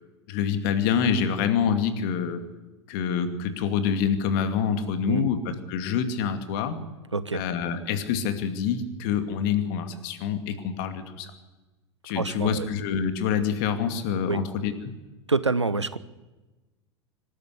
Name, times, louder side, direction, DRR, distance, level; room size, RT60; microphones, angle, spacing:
voice 1, 0.3-2.4 2.9-6.8 7.3-11.3 12.0-15.0, left 7 dB, 50° left, 8 dB, 2.4 m, -26 dB
voice 2, 7.1-7.4 12.2-12.7 14.3-14.4 15.3-16.0, right 3 dB, 85° right, 16 dB, 0.9 m, -26 dB
25.0 x 12.5 x 8.3 m, 1.1 s
figure-of-eight pair, 85°, 15 cm